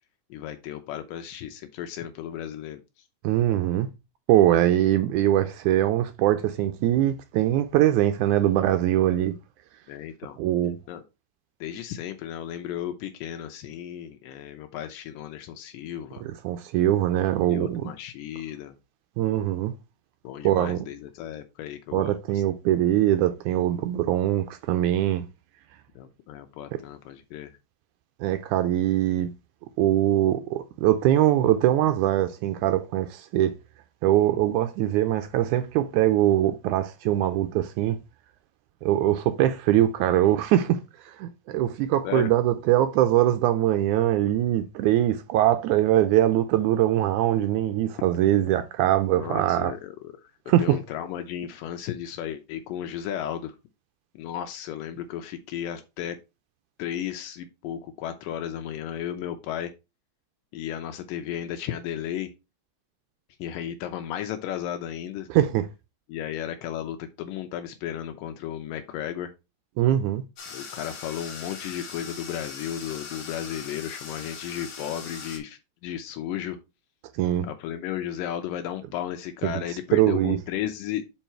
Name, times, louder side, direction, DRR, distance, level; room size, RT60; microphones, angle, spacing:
voice 1, 0.3-3.1 9.9-10.4 10.9-11.0 11.6-16.2 17.4-18.8 20.2-22.4 26.0-27.6 42.0-42.3 49.2-50.3 50.6-53.6 54.1-56.2 56.8-59.7 60.5-62.3 63.4-65.3 66.1-69.3 70.5-76.6 77.4-81.0, left 10 dB, 85° left, 2.3 m, -34 dB
voice 2, 3.2-3.9 4.3-9.3 10.4-10.8 16.2-17.9 19.2-19.7 20.4-20.8 21.9-25.3 28.2-29.3 29.8-33.5 34.0-38.0 38.8-49.7 50.5-50.8 65.3-65.6 69.8-70.2 77.2-77.5 79.4-79.5 79.9-80.4, right 13 dB, 80° right, 1.8 m, -22 dB
sound 1, 70.4-75.4, left 5 dB, 50° left, 1.8 m, -40 dB
5.7 x 4.6 x 4.3 m
omnidirectional pair, 3.9 m